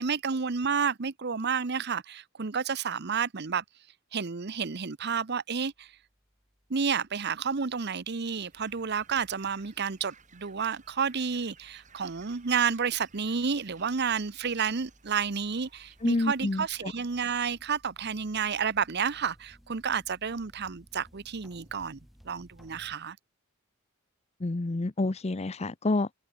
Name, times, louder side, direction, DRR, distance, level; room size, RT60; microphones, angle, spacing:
voice 1, 0.0-3.6 4.1-5.9 6.7-22.0 22.2-23.2, right 6 dB, 50° right, 0.8 m, -30 dB
sound 1, 5.6-23.0, equal, ahead, 3.9 m, -61 dB
sound 2, 8.5-16.7, right 5 dB, 35° right, 4.5 m, -59 dB
voice 2, 16.0-16.9 24.4-26.1, left 2 dB, 30° left, 0.6 m, -28 dB
head